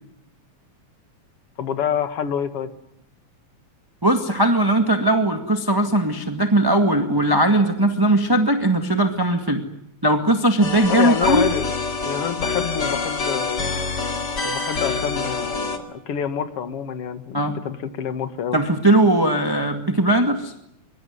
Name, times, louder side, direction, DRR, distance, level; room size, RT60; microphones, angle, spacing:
voice 1, 1.6-2.7 10.8-11.7 12.0-13.6 14.4-18.6, left 8 dB, 55° left, 9 dB, 2.6 m, -27 dB
voice 2, 4.0-9.6 10.0-11.4 17.3-17.6 18.5-20.5, right 1 dB, 10° right, 5 dB, 1.4 m, -19 dB
sound 1, 10.6-15.8, left 4 dB, 35° left, 2.7 m, -26 dB
24.5 x 24.0 x 9.5 m, 0.75 s
omnidirectional pair, 3.4 m